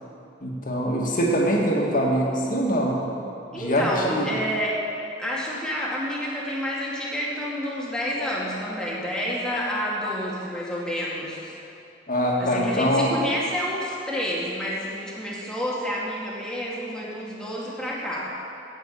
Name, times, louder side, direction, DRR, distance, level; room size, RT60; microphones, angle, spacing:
voice 1, 0.4-3.0 3.5-4.3 12.1-13.2, equal, 45° left, -2 dB, 2.1 m, -23 dB
voice 2, 3.5-4.8 5.2-11.5 12.4-18.3, equal, 5° left, -6 dB, 2.2 m, -29 dB
8.9 x 8.7 x 8.5 m, 2.7 s
head